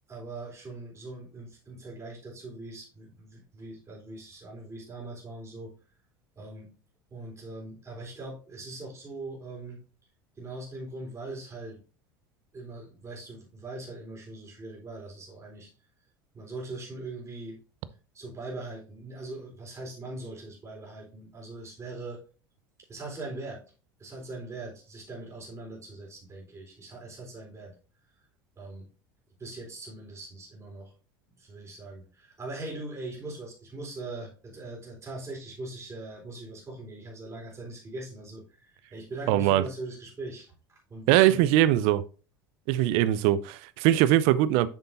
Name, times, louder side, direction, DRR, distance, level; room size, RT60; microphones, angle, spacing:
voice 1, 0.1-5.7 6.4-6.7 7.1-9.8 10.4-11.8 12.5-15.7 16.3-17.6 18.1-22.2 22.9-23.6 24.0-27.7 28.6-28.8 29.4-30.9 31.4-40.5 40.9-41.4, right 2 dB, 25° right, 3.9 m, -41 dB
voice 2, 39.3-39.6 41.1-42.0 42.7-44.7, right 13 dB, 60° right, 0.6 m, -21 dB
8.2 x 6.8 x 2.6 m
hypercardioid pair, 75°, 12 cm